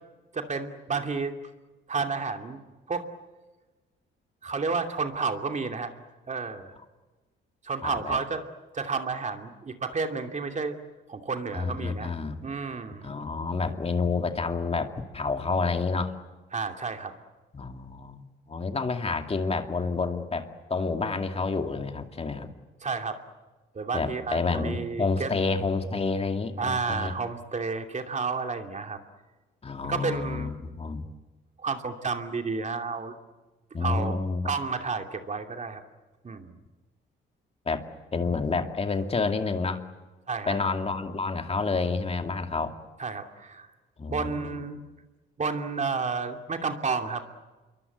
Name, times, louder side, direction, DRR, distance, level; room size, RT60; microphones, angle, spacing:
voice 1, 0.3-1.3 1.9-2.6 2.9-3.1 4.4-5.9 6.3-6.8 7.6-8.4 8.7-10.8 11.1-12.1 12.4-13.1 16.5-17.2 22.8-23.2 23.7-25.3 26.6-29.0 29.8-30.5 31.6-33.1 33.8-34.1 34.4-35.8 36.2-36.6 40.3-40.6 43.0-43.7 44.0-44.8 45.4-47.2, right 4 dB, 35° right, 5 dB, 2.7 m, -31 dB
voice 2, 7.8-8.2 11.5-12.4 13.0-16.2 17.5-22.5 23.9-27.1 29.6-31.0 33.7-34.5 37.7-37.8 38.1-39.8 40.5-42.8 44.0-44.6, left 4 dB, 30° left, 6 dB, 2.4 m, -29 dB
27.5 x 23.5 x 8.1 m, 1.2 s
cardioid pair, 90°, 20 cm